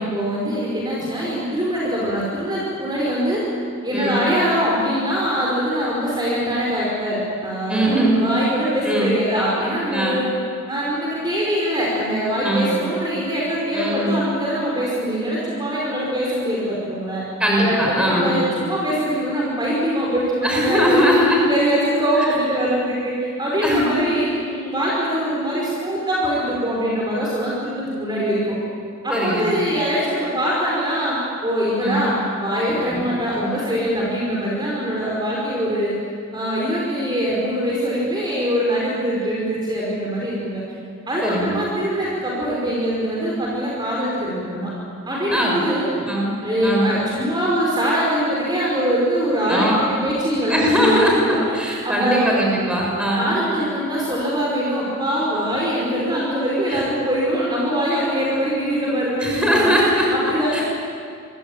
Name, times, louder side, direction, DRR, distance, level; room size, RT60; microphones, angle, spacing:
voice 1, 0.0-3.4 3.8-10.3 10.7-17.2 17.6-21.1 21.5-28.5 29.0-35.9 36.3-40.6 41.1-44.7 45.1-46.1 46.4-51.4 51.8-52.3 53.1-59.7 60.1-60.6, equal, 20° right, -4 dB, 5.3 m, -23 dB
voice 2, 3.9-4.2 7.7-8.2 8.8-9.1 9.9-10.2 12.4-12.8 13.7-14.2 17.4-18.4 20.4-21.4 22.2-22.3 23.6-23.9 29.1-29.5 31.8-32.0 32.7-33.0 34.0-34.1 41.2-41.6 45.3-45.6 46.1-46.3 46.6-46.9 49.5-49.8 50.5-53.4 56.7-56.8 59.2-60.6, equal, 5° right, -2 dB, 6.6 m, -20 dB
27.5 x 23.5 x 8.9 m, 2.3 s
head